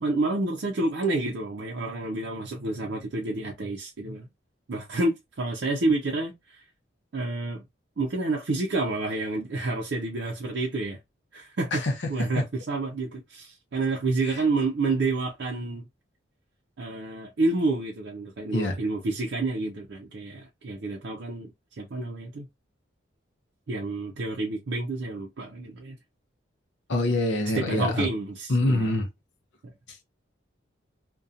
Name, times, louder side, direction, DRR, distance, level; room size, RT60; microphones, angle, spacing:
voice 1, 0.0-4.3 4.7-6.6 7.1-7.6 8.0-11.0 11.3-11.8 12.1-15.8 16.8-22.5 23.7-26.0 27.5-28.9 29.6-29.7, right 2 dB, 65° right, 0.5 m, -29 dB
voice 2, 26.9-28.1 28.5-29.1 29.9-30.0, left 2 dB, 70° left, 0.6 m, -25 dB
2.6 x 2.2 x 2.4 m
head